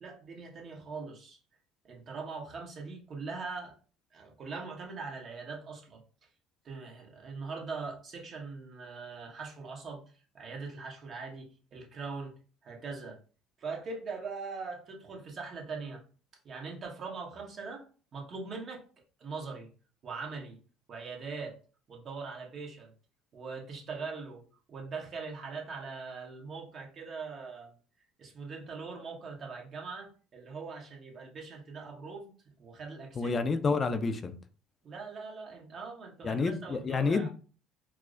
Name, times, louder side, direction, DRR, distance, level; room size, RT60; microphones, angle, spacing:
voice 1, 0.0-1.4 1.8-3.7 4.1-6.0 6.6-12.3 12.6-13.2 13.6-16.0 16.4-17.8 18.1-18.8 19.2-19.7 20.0-20.6 20.9-21.6 21.9-22.9 23.3-24.4 24.7-27.7 28.2-32.3 32.6-33.3 34.8-37.3, right 4 dB, 45° right, 1.2 m, -41 dB
voice 2, 33.2-34.4 36.2-37.3, left 4 dB, 35° left, 0.4 m, -29 dB
4.6 x 2.0 x 2.5 m
hypercardioid pair, 70°, 0 cm